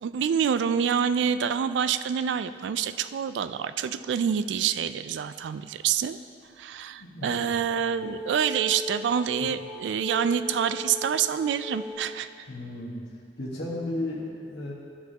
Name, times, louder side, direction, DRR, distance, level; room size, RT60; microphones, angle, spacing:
voice 1, 0.0-6.2 6.6-12.3, right 7 dB, 85° right, 13 dB, 0.3 m, -27 dB
voice 2, 7.0-7.5 9.4-9.5 12.5-13.0 13.4-14.7, left 1 dB, 70° left, -7 dB, 1.4 m, -34 dB
sound 1, 7.6-12.0, left 2 dB, 20° left, 1.8 m, -38 dB
12.5 x 5.9 x 2.8 m, 2.3 s
head